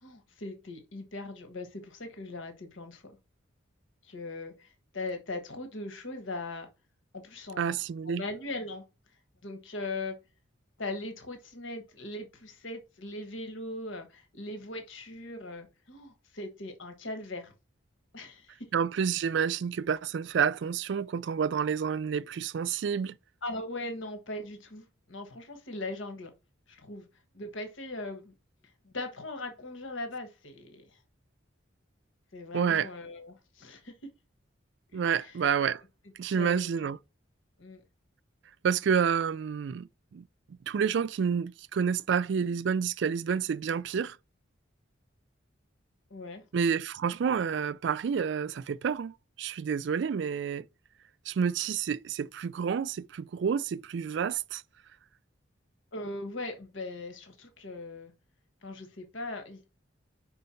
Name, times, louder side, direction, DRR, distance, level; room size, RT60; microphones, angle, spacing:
voice 1, 0.0-3.2 4.0-6.7 7.1-7.8 8.0-8.8 9.4-10.2 10.8-17.5 18.1-18.7 23.4-26.3 26.7-27.1 27.3-28.3 28.8-31.0 32.3-33.9 34.9-35.3 36.3-36.9 37.6-37.8 46.1-46.4 55.9-58.1 58.6-59.7, left 2 dB, 80° left, 1.4 m, -40 dB
voice 2, 7.6-8.2 18.7-23.2 32.5-32.9 34.9-35.8 36.2-37.0 38.6-44.2 46.5-50.7 51.3-54.6, right 7 dB, 65° right, 0.3 m, -29 dB
5.2 x 4.5 x 5.6 m
head